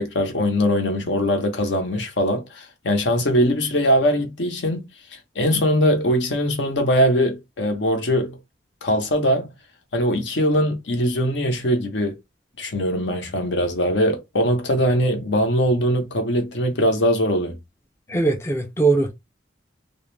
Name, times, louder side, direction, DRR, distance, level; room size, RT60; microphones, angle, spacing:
voice 1, 0.0-8.4 8.8-9.5 9.9-12.2 12.6-17.6, equal, 65° left, 0.7 m, -21 dB
voice 2, 18.1-19.1, right 3 dB, 15° left, 0.4 m, -20 dB
2.3 x 2.1 x 3.2 m
head